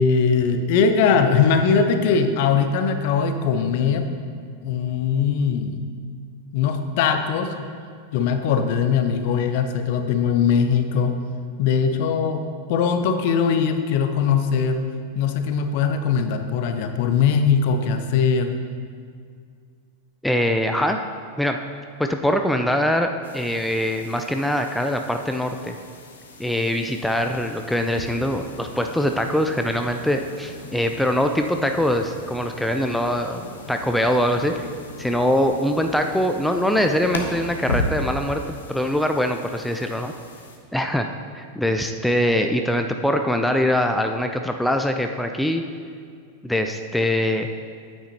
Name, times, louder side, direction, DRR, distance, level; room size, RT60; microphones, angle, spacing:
voice 1, 0.0-4.2 4.6-5.8 6.5-7.6 8.1-11.2 11.6-12.4 12.7-14.9 15.1-18.5, left 6 dB, 50° left, 7 dB, 0.6 m, -20 dB
voice 2, 20.2-21.0 21.4-21.6 22.0-25.8 26.4-33.4 33.7-34.7 35.0-40.1 40.7-41.0 41.4-45.6 46.4-47.5, equal, ahead, 5 dB, 0.4 m, -23 dB
sound 1, 23.2-40.6, left 2 dB, 70° left, 1.0 m, -36 dB
9.3 x 8.8 x 2.9 m, 2.2 s
figure-of-eight pair, 90°, 0 cm